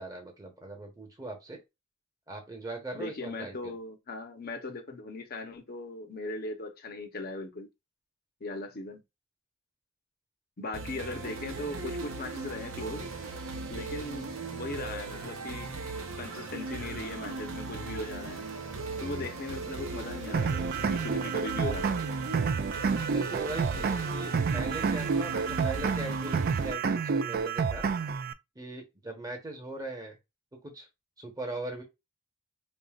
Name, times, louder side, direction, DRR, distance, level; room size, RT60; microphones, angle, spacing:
voice 1, 0.0-1.6 2.3-3.8 23.1-27.8 28.5-30.2 30.5-30.9 31.2-31.8, right 2 dB, 20° right, 1.1 m, -40 dB
voice 2, 2.9-7.7 8.4-9.0 10.6-13.1 13.7-15.7 16.2-18.5 19.0-22.0, left 2 dB, 50° left, 0.9 m, -39 dB
sound 1, 10.7-26.7, right 3 dB, 80° right, 0.8 m, -38 dB
sound 2, 20.3-28.3, right 5 dB, 45° right, 0.4 m, -29 dB
5.3 x 2.4 x 2.4 m
head